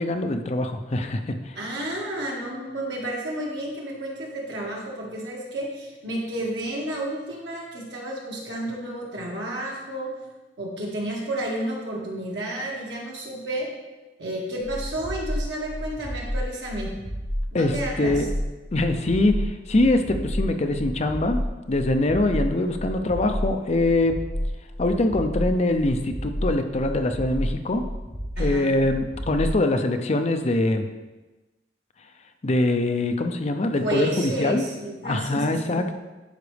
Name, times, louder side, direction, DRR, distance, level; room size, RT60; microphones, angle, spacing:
voice 1, 0.0-1.6 17.5-18.3 18.7-21.4 21.7-24.2 24.8-27.8 28.4-30.9 32.4-34.6 35.0-36.0, left 2 dB, 40° left, 6 dB, 0.6 m, -23 dB
voice 2, 1.6-10.1 10.6-13.7 14.2-16.9 17.5-18.2 28.4-28.7 33.8-35.8, right 1 dB, 80° right, -3 dB, 2.0 m, -31 dB
sound 1, 14.6-29.6, equal, 15° right, 1.9 m, -31 dB
11.5 x 5.2 x 3.4 m, 1.1 s
head